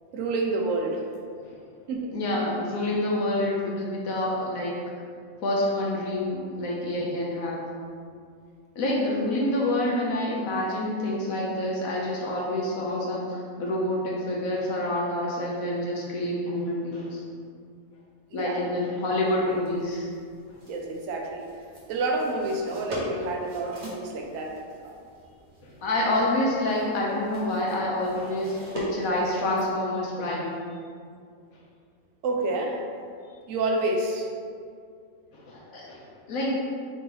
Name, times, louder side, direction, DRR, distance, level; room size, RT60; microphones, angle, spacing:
voice 1, 0.1-1.1 1.9-2.1 18.3-18.6 20.7-21.5 21.9-25.0 32.2-32.8 33.5-34.3, right 2 dB, 70° right, 1 dB, 0.9 m, -29 dB
voice 2, 2.1-4.8 5.4-7.7 8.8-17.2 18.3-20.1 20.5-20.6 25.6-30.6 35.3-36.6, left 1 dB, 75° left, -3 dB, 1.1 m, -27 dB
sound 1, 19.2-29.7, equal, 50° right, 1.5 m, -42 dB
4.6 x 2.8 x 3.9 m, 2.2 s
omnidirectional pair, 1.5 m